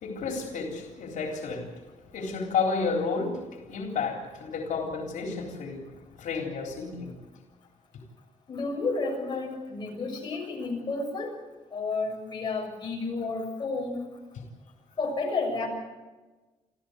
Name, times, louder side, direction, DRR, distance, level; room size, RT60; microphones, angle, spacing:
voice 1, 0.0-1.7 2.1-3.4 3.7-5.8 6.2-7.1, left 4 dB, 90° left, 2 dB, 3.8 m, -31 dB
voice 2, 8.5-11.3 11.7-14.0 15.0-15.7, left 3 dB, 35° left, 0 dB, 6.9 m, -31 dB
27.5 x 14.0 x 8.0 m, 1.2 s
wide cardioid pair, 170°, 13 cm